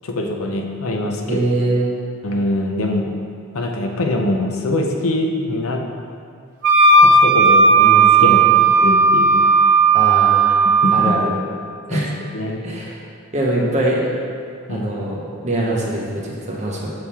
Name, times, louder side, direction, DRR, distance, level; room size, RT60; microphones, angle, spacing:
voice 1, 0.0-1.4 2.2-3.1 3.5-5.8 7.0-8.5 8.8-9.5 10.8-11.1 11.9-12.0 12.3-12.6 14.7-14.9, left 1 dB, 80° left, 2 dB, 0.6 m, -23 dB
voice 2, 1.3-1.9 8.2-8.5 9.9-10.6 10.9-11.3 11.9-12.1 12.6-13.0 13.3-14.0 14.7-17.0, right 1 dB, 35° right, -3 dB, 0.8 m, -23 dB
Wind instrument woodwind instrument, 6.6-11.1, right 4 dB, 70° right, 0.5 m, -13 dB
6.3 x 3.6 x 4.2 m, 2.3 s
head